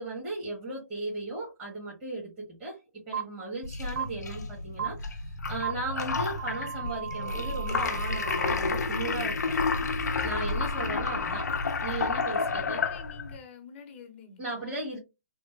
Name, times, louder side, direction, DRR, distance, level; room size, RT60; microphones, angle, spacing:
voice 1, 0.0-2.8 3.1-9.6 10.2-11.5 11.8-12.8 14.4-15.0, right 2 dB, 20° right, 1.5 m, -36 dB
sound 1, 3.1-3.2 4.0-4.1 4.8-4.9 5.6-5.7 6.4-8.5, right 8 dB, 60° right, 0.4 m, -35 dB
sound 2, 3.6-13.4, left 4 dB, 75° left, 0.6 m, -30 dB
voice 2, 12.5-14.9, left 5 dB, 40° left, 0.9 m, -48 dB
3.3 x 2.1 x 3.2 m
hypercardioid pair, 140°, 9 cm